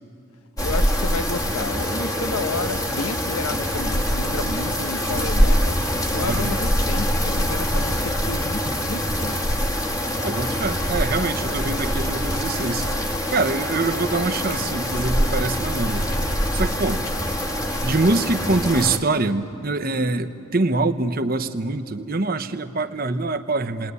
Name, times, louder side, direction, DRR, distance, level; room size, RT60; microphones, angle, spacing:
voice 1, 0.6-5.8 6.1-9.4, left 3 dB, 90° left, 10 dB, 0.9 m, -31 dB
sound 1, 0.6-19.0, equal, 15° left, 1.5 m, -24 dB
voice 2, 6.2-6.6 10.2-12.9 13.3-16.1 16.5-17.1 17.8-23.9, right 3 dB, 40° right, 9 dB, 1.0 m, -24 dB
sound 2, 17.4-17.5, equal, 25° right, 1.4 m, -45 dB
29.5 x 20.5 x 9.7 m, 2.9 s
head